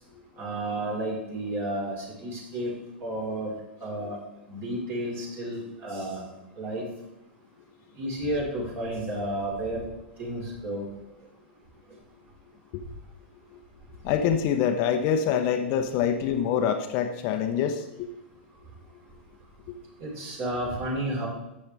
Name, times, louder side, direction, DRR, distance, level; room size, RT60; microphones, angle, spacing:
voice 1, 0.4-2.7 3.0-3.5 3.8-4.2 4.5-6.3 6.6-6.8 8.0-9.8 10.2-10.9 20.0-21.3, right 1 dB, 35° right, -2 dB, 4.3 m, -31 dB
voice 2, 14.0-18.1 19.7-19.8, left 8 dB, 40° left, 6 dB, 0.9 m, -25 dB
12.0 x 8.4 x 3.4 m, 0.91 s
figure-of-eight pair, 100°, 6 cm